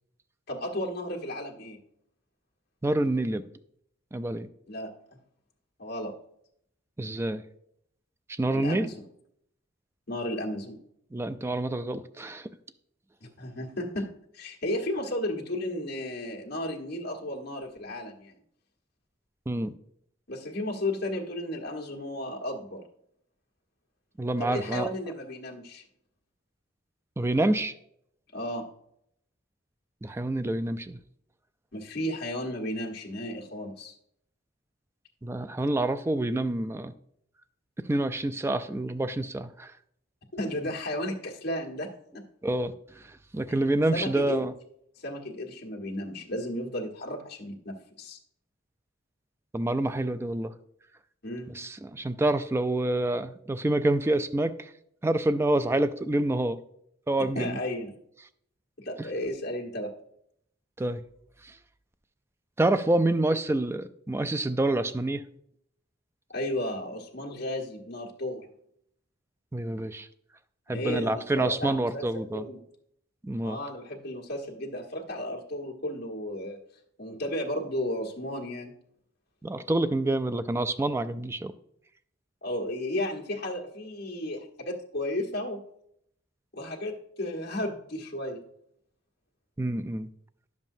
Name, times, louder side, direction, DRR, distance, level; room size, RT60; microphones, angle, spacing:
voice 1, 0.5-1.8 4.7-4.9 5.8-6.1 8.5-8.9 10.1-10.8 13.2-14.1 14.3-18.4 20.3-22.8 24.4-25.8 28.3-28.7 31.7-33.9 40.3-42.3 43.5-44.5 45.0-48.2 51.2-51.5 57.3-57.9 58.8-59.9 66.3-68.5 70.7-72.6 73.4-76.6 77.0-78.7 82.4-85.6 86.5-88.4, left 1 dB, 55° left, -2 dB, 1.4 m, -34 dB
voice 2, 2.8-3.4 4.1-4.5 7.0-7.4 8.4-8.9 11.1-12.5 19.5-19.7 24.2-24.9 27.2-27.7 30.0-31.0 35.2-36.9 37.9-39.7 42.4-42.7 43.3-44.5 49.5-50.5 51.6-54.7 55.0-56.6 57.1-57.6 60.8-61.0 62.6-65.2 69.5-70.1 70.7-72.4 73.2-73.6 79.4-81.5 89.6-90.1, right 1 dB, 15° right, 11 dB, 0.3 m, -27 dB
10.5 x 7.3 x 2.7 m, 0.72 s
head